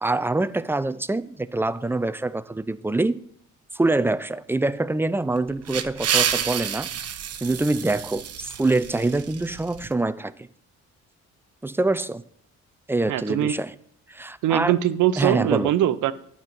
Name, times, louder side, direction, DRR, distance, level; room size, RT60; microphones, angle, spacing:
voice 1, 0.0-3.2 3.7-6.9 7.4-10.3 11.6-12.2 12.9-13.7 14.1-14.7 15.2-15.7, right 2 dB, 10° right, 0.4 m, -25 dB
sound 1, 5.4-9.9, right 8 dB, 55° right, 0.9 m, -29 dB
voice 2, 13.1-13.5 14.4-16.1, right 12 dB, 80° right, 0.7 m, -22 dB
9.5 x 5.4 x 6.0 m
cardioid pair, 90°, 30 cm